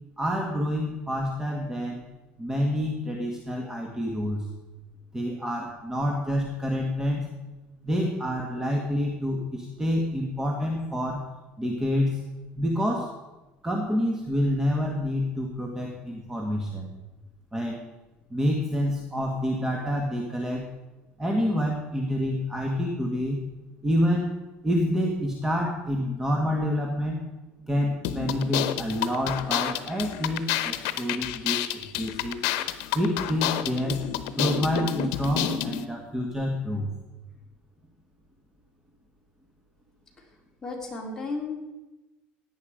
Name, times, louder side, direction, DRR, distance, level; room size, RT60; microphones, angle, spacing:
voice 1, 0.2-2.0 2.4-4.5 5.1-7.3 7.8-11.3 11.6-12.2 12.6-13.2 13.6-16.9 17.5-17.8 18.3-20.7 21.2-23.4 23.8-24.3 24.6-27.2 27.7-32.4 32.9-34.1 34.3-36.9, equal, 10° right, 1 dB, 1.6 m, -27 dB
sound 1, 28.0-35.8, left 11 dB, 85° left, 0.9 m, -29 dB
voice 2, 40.6-41.6, left 3 dB, 15° left, -2 dB, 3.7 m, -33 dB
17.0 x 9.5 x 5.1 m, 1.1 s
cardioid pair, 130°, 4 cm